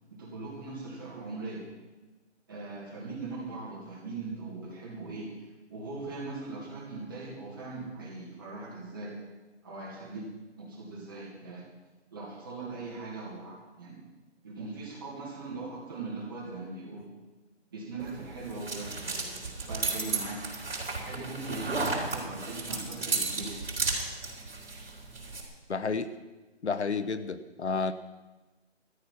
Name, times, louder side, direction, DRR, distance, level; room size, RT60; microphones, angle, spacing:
voice 1, 0.1-1.7 2.5-5.3 5.7-9.2 9.6-10.3 10.6-11.7 12.1-14.0 14.4-17.1 17.7-19.3 19.7-20.4 21.0-23.6, right 3 dB, 20° right, -4 dB, 2.2 m, -40 dB
sound 1, 18.0-25.4, right 3 dB, 55° right, 4.1 m, -34 dB
voice 2, 25.7-26.1 26.6-27.9, left 4 dB, 75° left, 12 dB, 0.9 m, -30 dB
13.5 x 9.9 x 5.9 m, 1.2 s
hypercardioid pair, 175°, 35 cm